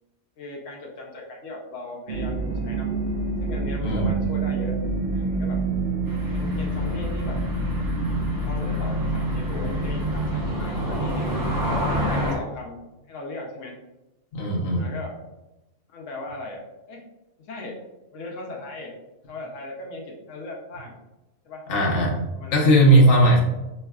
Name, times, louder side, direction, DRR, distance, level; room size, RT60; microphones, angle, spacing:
voice 1, 0.4-2.9 3.4-4.8 5.1-5.6 6.3-7.4 8.4-11.3 11.9-12.8 13.1-13.7 14.8-15.2 15.9-17.0 17.4-17.8 18.1-18.9 19.3-20.9 21.4-21.7 22.3-22.7, left 2 dB, 85° left, -1 dB, 1.1 m, -38 dB
sound 1, 2.1-12.3, right 2 dB, 65° right, 0.8 m, -27 dB
voice 2, 3.8-4.1 14.3-14.8 21.7-22.3 22.5-23.4, right 1 dB, 55° left, -2 dB, 1.0 m, -17 dB
sound 2, 6.1-12.4, equal, 20° right, 0.7 m, -32 dB
4.5 x 3.1 x 2.3 m, 1.0 s
omnidirectional pair, 1.3 m